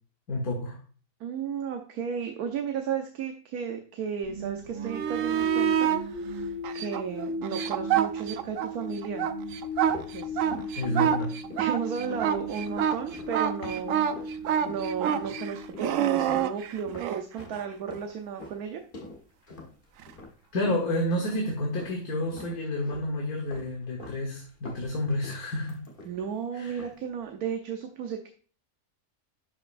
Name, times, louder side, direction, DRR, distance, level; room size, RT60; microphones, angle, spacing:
voice 1, 0.3-0.8 10.8-11.4 20.5-25.8 26.5-26.8, left 1 dB, 85° left, 0 dB, 1.9 m, -30 dB
voice 2, 1.2-9.3 10.1-10.4 11.6-14.3 14.6-18.8 26.0-28.3, right 7 dB, 85° right, 4 dB, 1.3 m, -34 dB
sound 1, 4.2-16.4, equal, 30° right, 2.9 m, -37 dB
sound 2, 4.8-6.0 6.6-8.7 9.0-17.2 20.0-20.1, right 10 dB, 70° right, 0.9 m, -27 dB
sound 3, 9.5-14.4 14.7-15.4 15.7-22.0 22.3-23.1 23.5-24.2 24.5-26.4 26.7-27.0, left 2 dB, 35° left, 1.4 m, -45 dB
11.5 x 5.3 x 2.6 m, 0.42 s
omnidirectional pair, 1.5 m